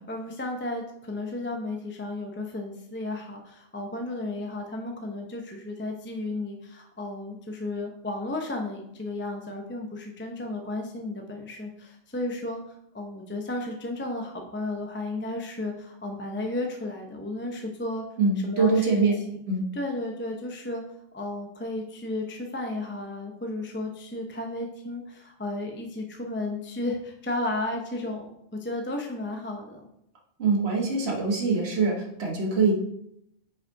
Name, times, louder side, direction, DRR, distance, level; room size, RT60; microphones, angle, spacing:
voice 1, 0.1-12.6 12.9-18.1 18.4-18.9 19.7-20.8 21.1-29.8, left 2 dB, 10° left, 2 dB, 0.6 m, -33 dB
voice 2, 18.2-19.1 19.5-19.6 30.4-32.7, right 4 dB, 55° right, -1 dB, 1.5 m, -23 dB
5.5 x 4.9 x 4.6 m, 0.75 s
omnidirectional pair, 1.3 m